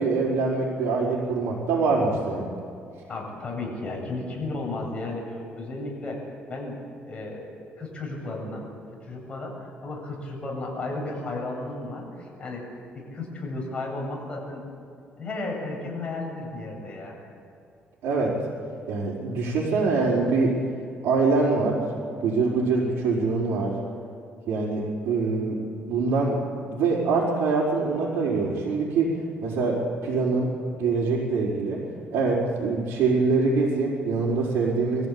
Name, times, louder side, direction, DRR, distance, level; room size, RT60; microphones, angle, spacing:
voice 1, 0.0-2.5 18.0-18.3 18.9-20.5 21.0-21.8 22.2-23.7 24.5-25.6 25.9-26.4 26.7-29.1 29.4-30.5 30.8-31.8 32.1-35.1, right 4 dB, 85° right, -8 dB, 5.1 m, -24 dB
voice 2, 3.1-6.8 7.1-7.5 7.8-12.7 13.1-14.6 15.2-17.2, left 2 dB, 25° left, -2 dB, 7.8 m, -34 dB
24.0 x 15.0 x 8.9 m, 2.5 s
cardioid pair, 125°, 4 cm